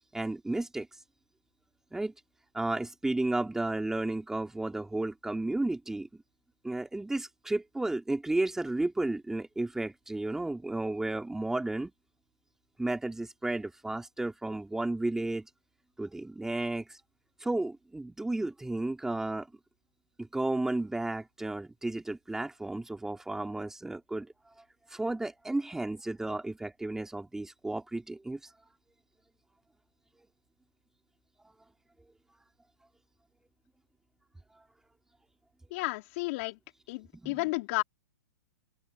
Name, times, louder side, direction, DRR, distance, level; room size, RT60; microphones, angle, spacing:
voice 1, 0.1-0.9 1.9-2.1 2.5-6.1 6.6-11.9 12.8-15.5 16.0-17.0 17.4-19.5 20.2-24.3 24.6-28.5 31.4-31.5 34.5-34.6 37.1-37.5, right 2 dB, 5° right, 2.8 m, -33 dB
voice 2, 35.7-36.6 36.9-37.8, left 24 dB, 50° left, 4.4 m, -32 dB
open air
hypercardioid pair, 125°, 9 cm